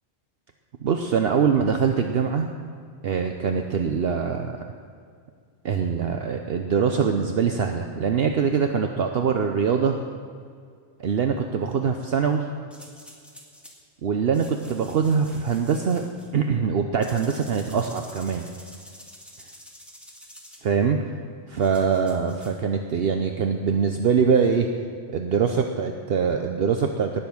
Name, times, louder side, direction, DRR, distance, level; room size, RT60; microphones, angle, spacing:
voice 1, 0.8-2.5 3.0-4.6 5.6-10.0 11.0-12.5 14.0-16.0 16.3-18.4 20.6-21.0 21.5-24.7 25.1-27.2, right 6 dB, 60° right, 5 dB, 0.9 m, -23 dB
sound 1, 12.7-13.8 14.3-16.3 17.0-20.6 21.6-22.6, equal, ahead, 1.9 m, -47 dB
18.5 x 7.0 x 7.1 m, 2.2 s
omnidirectional pair, 1.2 m